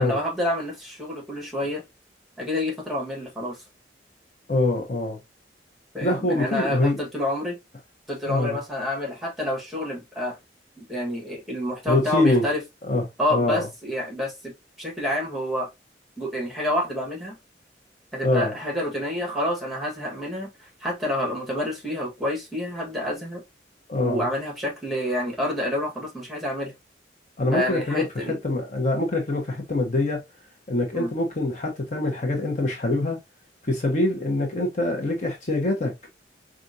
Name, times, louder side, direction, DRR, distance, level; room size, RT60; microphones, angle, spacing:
voice 1, 0.0-1.8 2.4-3.6 5.9-7.6 8.1-10.4 10.8-12.6 13.2-15.7 16.2-17.4 18.1-20.5 20.8-23.4 24.0-26.7 27.5-28.4 30.9-31.1, left 1 dB, ahead, 1.4 m, -28 dB
voice 2, 4.5-5.2 6.0-7.0 8.3-8.6 11.9-12.5 12.9-13.0 13.3-13.7 18.2-18.5 23.9-24.3 27.4-30.2 30.7-33.2 33.6-35.9, left 2 dB, 45° left, 1.0 m, -24 dB
5.0 x 2.5 x 2.6 m
head